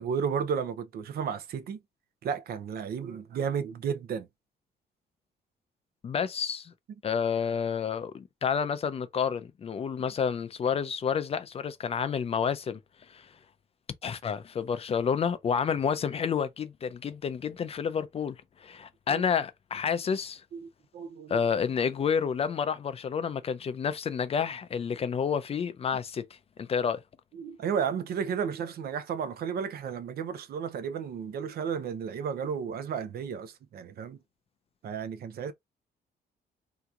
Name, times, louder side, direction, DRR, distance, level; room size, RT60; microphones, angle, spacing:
voice 1, 0.0-1.8 2.2-4.3 20.5-20.6 20.9-21.4 27.4-34.2 34.8-35.5, right 7 dB, 65° right, 0.6 m, -33 dB
voice 2, 6.0-6.7 7.0-12.8 13.1-13.3 14.0-20.4 21.3-26.2 26.6-27.0, left 7 dB, 35° left, 0.4 m, -29 dB
3.5 x 2.9 x 2.4 m
cardioid pair, 150°, 17 cm